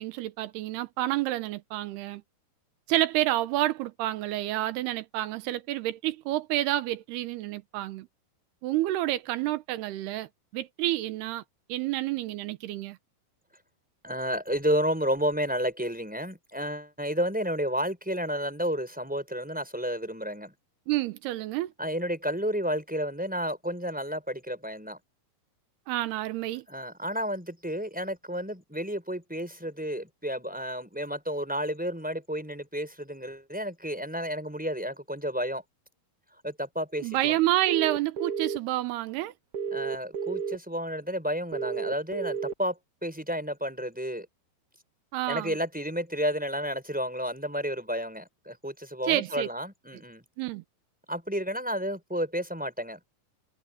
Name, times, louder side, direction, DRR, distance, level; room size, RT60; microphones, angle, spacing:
voice 1, 0.0-2.2 2.9-8.1 8.6-11.4 11.7-13.0 20.9-21.7 25.9-26.7 37.0-39.3 45.1-45.6 49.1-49.5 50.4-50.6, right 15 dB, 85° right, 3.0 m, -29 dB
voice 2, 14.0-20.5 21.8-25.0 26.7-35.6 36.4-37.4 39.7-44.3 45.3-50.2 51.1-53.0, equal, ahead, 4.9 m, -31 dB
sound 1, 37.7-38.6 39.5-40.5 41.5-42.5, right 7 dB, 55° right, 1.7 m, -31 dB
omnidirectional pair, 4.6 m